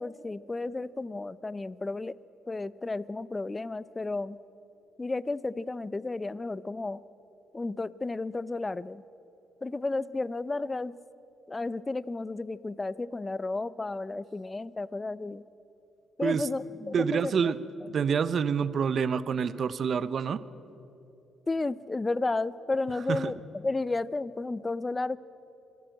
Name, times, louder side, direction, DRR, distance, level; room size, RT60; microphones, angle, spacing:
voice 1, 0.0-2.2 2.5-4.4 5.0-7.0 7.5-9.0 9.6-11.0 11.5-15.4 16.2-17.5 17.8-17.9 21.5-25.2, left 3 dB, 20° left, 18 dB, 0.5 m, -32 dB
voice 2, 16.9-17.6 17.9-20.4 23.1-23.3, right 6 dB, 55° right, 15 dB, 0.7 m, -27 dB
25.5 x 13.5 x 7.9 m, 2.9 s
cardioid pair, 90°, 0 cm